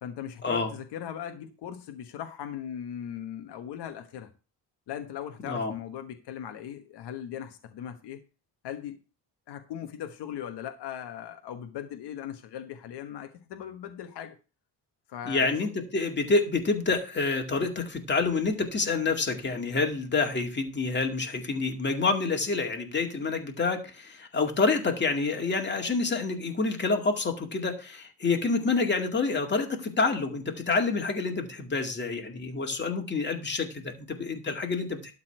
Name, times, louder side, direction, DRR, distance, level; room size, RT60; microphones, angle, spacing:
voice 1, 0.0-4.3 4.9-8.2 8.6-9.0 9.5-14.4 15.1-15.6, left 9 dB, 85° left, 6 dB, 1.3 m, -39 dB
voice 2, 15.3-35.1, left 4 dB, 25° left, 4 dB, 2.1 m, -28 dB
12.0 x 4.1 x 7.8 m, 0.33 s
cardioid pair, 140°, 40 cm